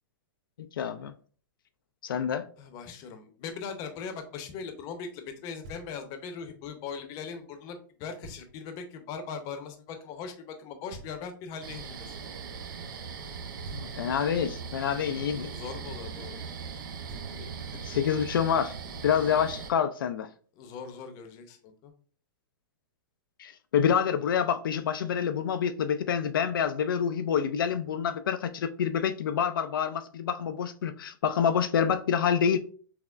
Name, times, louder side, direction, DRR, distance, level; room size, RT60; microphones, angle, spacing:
voice 1, 0.8-1.1 2.0-2.5 13.7-15.5 17.8-18.7 19.0-20.3 23.4-32.6, left 8 dB, 85° left, 0.4 m, -27 dB
voice 2, 2.6-12.2 15.1-16.5 19.1-19.7 20.5-21.9, left 6 dB, 35° left, 0.7 m, -40 dB
Knock, 5.6-6.3 8.2-8.9 10.9-11.7 13.6-14.4 16.7-16.8 17.1-17.9, right 2 dB, 55° right, 1.7 m, -49 dB
sound 1, 11.6-19.7, right 6 dB, 75° right, 0.6 m, -40 dB
5.8 x 2.0 x 2.4 m
hypercardioid pair, 140°, 11 cm